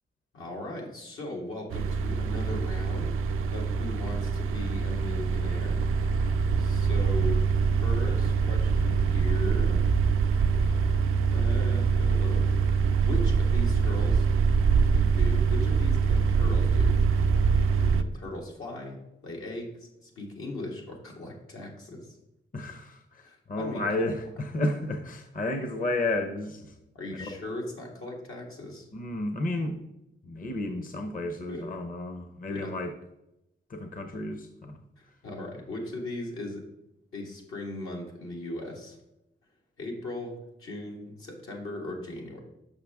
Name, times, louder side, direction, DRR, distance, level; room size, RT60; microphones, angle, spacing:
voice 1, 0.3-3.1 3.5-5.8 6.6-7.4 7.8-9.8 11.3-12.5 13.0-14.3 14.9-16.9 17.7-19.0 19.2-22.2 23.2-24.1 26.9-28.9 31.5-31.7 32.5-32.7 35.0-36.6 37.1-39.0 39.8-42.4, left 1 dB, 80° left, -1 dB, 1.7 m, -38 dB
sound 1, 1.7-18.0, right 5 dB, 85° right, 0.4 m, -24 dB
voice 2, 22.5-26.7 28.9-29.7 30.2-32.9 33.7-34.8, left 2 dB, 40° left, 7 dB, 0.8 m, -32 dB
6.6 x 5.6 x 3.5 m, 0.86 s
cardioid pair, 60°, 21 cm